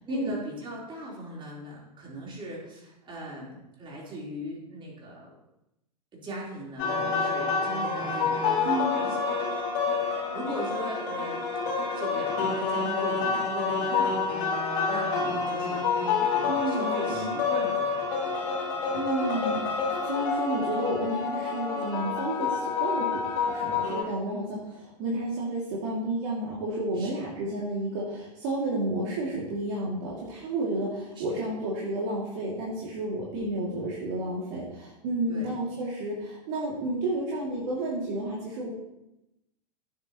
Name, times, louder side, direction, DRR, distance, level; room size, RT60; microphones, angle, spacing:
voice 1, 0.0-5.3 6.1-9.5 10.0-15.9 16.3-18.4 27.0-27.3 31.2-31.4 35.3-35.5, equal, 25° right, -4 dB, 3.9 m, -40 dB
sound 1, 6.8-24.0, left 5 dB, 45° left, 3.1 m, -28 dB
voice 2, 8.6-9.0 16.5-17.3 18.9-38.7, right 1 dB, 45° right, -4 dB, 2.5 m, -31 dB
15.5 x 7.5 x 3.0 m, 0.89 s
figure-of-eight pair, 95°, 21 cm